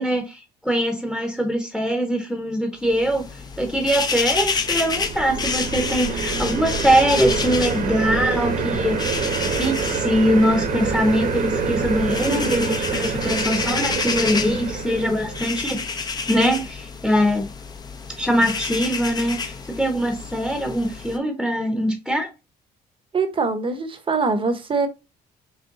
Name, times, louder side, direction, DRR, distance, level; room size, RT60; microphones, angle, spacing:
voice 1, 0.0-3.2 3.6-17.5 18.2-22.3, equal, ahead, 1.0 m, -22 dB
sound 1, 2.9-21.2, left 5 dB, 25° left, 0.7 m, -30 dB
sound 2, 4.3-15.7, right 5 dB, 50° right, 1.2 m, -27 dB
voice 2, 23.1-24.9, right 4 dB, 30° right, 1.0 m, -23 dB
6.3 x 2.2 x 3.9 m
cardioid pair, 110°, 17 cm